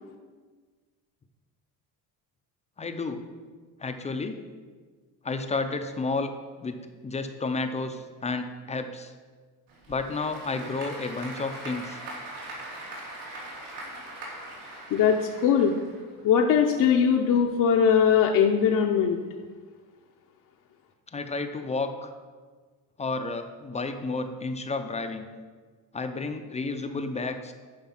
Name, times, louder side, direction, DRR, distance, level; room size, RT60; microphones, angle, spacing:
voice 1, 2.8-3.2 3.8-4.4 5.2-6.3 6.6-9.1 9.9-12.0 17.3-17.4 21.1-22.1 23.0-25.3 25.9-27.5, left 3 dB, 15° left, 7 dB, 0.5 m, -31 dB
Applause / Crowd, 9.7-16.3, right 1 dB, 80° right, 3.2 m, -41 dB
voice 2, 14.9-15.7 16.2-19.2, left 7 dB, 50° left, 1 dB, 0.7 m, -21 dB
11.0 x 5.2 x 5.7 m, 1.5 s
cardioid pair, 150°, 39 cm